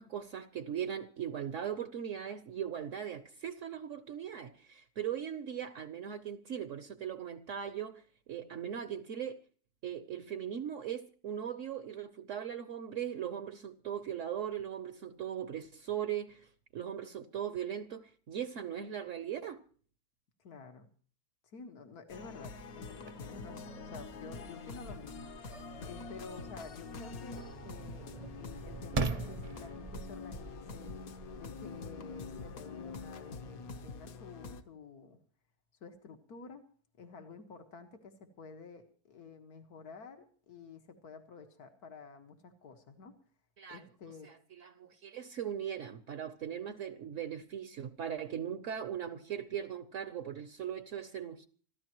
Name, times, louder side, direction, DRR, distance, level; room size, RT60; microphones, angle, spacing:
voice 1, 0.0-8.0 8.3-9.4 9.8-19.6 43.6-43.8 44.2-51.5, right 9 dB, 60° right, 1.1 m, -39 dB
voice 2, 20.4-20.9 21.4-25.3 25.8-28.1 28.4-30.9 31.3-35.2 35.8-36.6 37.0-43.2 43.7-44.3, left 4 dB, 85° left, 2.1 m, -51 dB
sound 1, 22.1-34.6, left 4 dB, 70° left, 1.5 m, -45 dB
sound 2, 22.9-33.9, right 3 dB, 35° right, 0.6 m, -43 dB
26.5 x 14.5 x 3.0 m
omnidirectional pair, 1.6 m